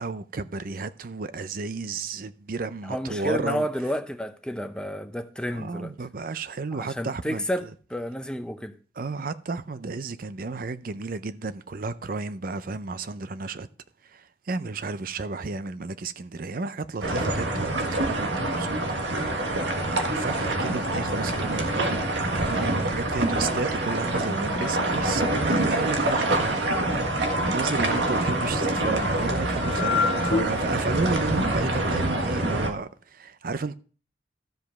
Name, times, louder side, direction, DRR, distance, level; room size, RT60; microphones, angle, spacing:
voice 1, 0.0-3.7 5.5-7.4 9.0-13.7 14.1-19.2 19.8-26.6 27.4-33.8, right 4 dB, 50° right, 0.5 m, -32 dB
voice 2, 2.8-5.9 6.7-8.7, equal, 5° left, 0.6 m, -31 dB
sound 1, 17.0-32.7, right 2 dB, 75° right, 1.6 m, -26 dB
sound 2, 24.1-30.4, left 4 dB, 30° left, 0.9 m, -32 dB
13.0 x 5.2 x 5.9 m
head